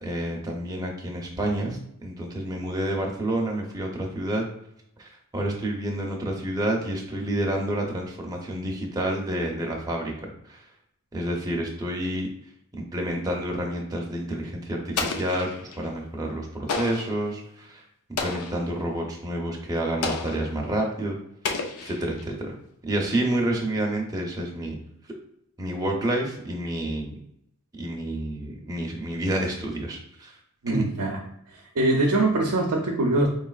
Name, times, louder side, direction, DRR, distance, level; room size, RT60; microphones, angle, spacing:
voice 1, 0.0-4.4 5.0-10.1 10.4-10.7 11.1-12.3 12.7-15.5 15.7-17.8 18.2-21.2 21.6-22.6 22.8-24.8 25.6-27.1 27.7-30.4 30.7-30.9, right 1 dB, 15° right, 0 dB, 0.7 m, -29 dB
Explosion, 15.0-15.9 16.7-17.2 18.2-18.7 20.0-20.6 21.4-22.3, left 4 dB, 80° left, 0.5 m, -31 dB
voice 2, 30.6-31.2 31.8-33.3, right 2 dB, 85° right, 2 dB, 0.6 m, -23 dB
4.5 x 3.2 x 2.4 m, 0.75 s
head